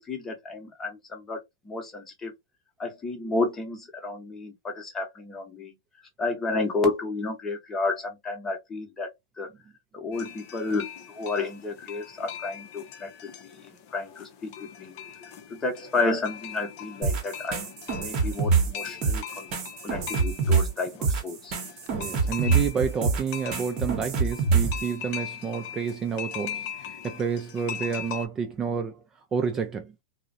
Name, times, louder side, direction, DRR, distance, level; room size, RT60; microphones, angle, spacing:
voice 1, 0.0-1.4 1.7-2.3 2.8-5.7 6.2-9.1 9.4-9.5 9.9-10.9 11.1-13.1 13.4-14.5 14.8-14.9 15.5-17.7 18.0-19.5 19.8-21.5, left 3 dB, 15° left, 0.8 m, -31 dB
sound 1, 10.1-28.3, left 8 dB, 55° left, 0.5 m, -41 dB
sound 2, 17.0-24.9, right 5 dB, 40° right, 0.9 m, -25 dB
voice 2, 21.9-29.0 29.3-29.9, right 6 dB, 20° right, 0.3 m, -29 dB
2.4 x 2.0 x 2.5 m
hypercardioid pair, 125°, 2 cm